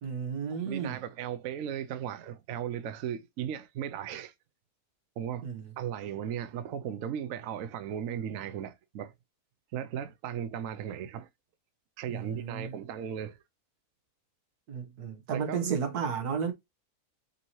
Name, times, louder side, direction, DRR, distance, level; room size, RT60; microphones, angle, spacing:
voice 1, 0.0-1.0 5.4-5.6 12.1-12.8 14.7-16.5, right 6 dB, 90° right, 1.6 m, -33 dB
voice 2, 0.7-4.3 5.2-5.5 5.8-9.1 9.7-11.3 12.0-13.4 15.3-15.8, right 9 dB, 65° right, 0.9 m, -36 dB
5.4 x 2.8 x 3.0 m
omnidirectional pair, 1.6 m